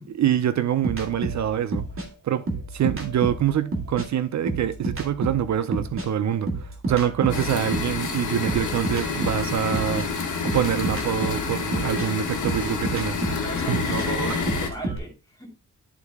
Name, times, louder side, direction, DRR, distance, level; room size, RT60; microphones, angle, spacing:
voice 1, 0.1-1.8 2.2-2.4 2.7-13.4 13.7-14.4, right 10 dB, 65° right, 0.6 m, -25 dB
sound 1, 0.8-4.1 4.4-8.0 8.5-15.0, right 2 dB, 45° right, 2.0 m, -30 dB
voice 2, 6.9-7.4 13.4-15.5, right 1 dB, 10° left, 2.4 m, -40 dB
sound 2, 7.3-14.7, left 5 dB, 75° left, 1.4 m, -28 dB
11.0 x 4.0 x 3.5 m
wide cardioid pair, 140°, 30 cm